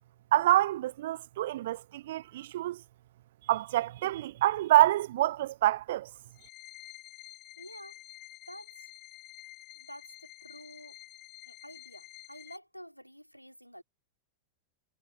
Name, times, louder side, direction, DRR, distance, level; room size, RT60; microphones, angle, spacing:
voice 1, 0.3-2.8 3.5-6.1, right 14 dB, 55° right, 0.4 m, -26 dB
sound 1, 6.3-12.6, left 17 dB, 35° left, 4.3 m, -50 dB
voice 2, 7.6-8.0 8.5-8.9 9.7-11.0 11.4-13.8, equal, 90° left, 4.0 m, -49 dB
figure-of-eight pair, 90°, 0 cm